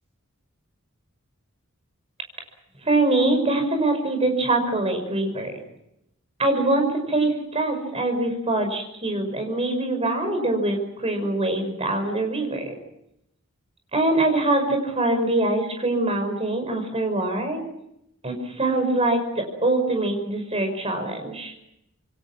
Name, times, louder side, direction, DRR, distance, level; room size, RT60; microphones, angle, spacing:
voice 1, 2.8-5.6 6.4-12.7 13.9-17.6 18.2-21.5, right 2 dB, 25° right, 5 dB, 5.8 m, -23 dB
27.5 x 22.5 x 6.2 m, 0.82 s
head